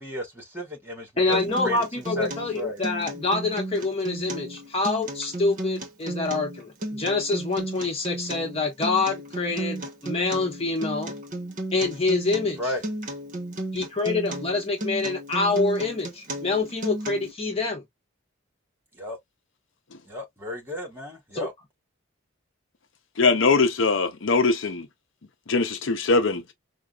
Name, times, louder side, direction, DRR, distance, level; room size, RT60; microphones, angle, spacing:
voice 1, 0.0-2.3 2.5-2.8 12.6-12.8 19.0-19.2 20.1-21.5, equal, 10° right, 1.5 m, -33 dB
voice 2, 1.2-11.2 11.7-12.7 13.7-17.8 21.3-21.5, left 3 dB, 30° left, 0.8 m, -26 dB
Acoustic guitar, 1.3-17.3, right 1 dB, 40° right, 0.8 m, -34 dB
voice 3, 23.2-24.9 25.5-26.4, left 4 dB, 65° left, 0.6 m, -21 dB
4.8 x 2.0 x 2.3 m
head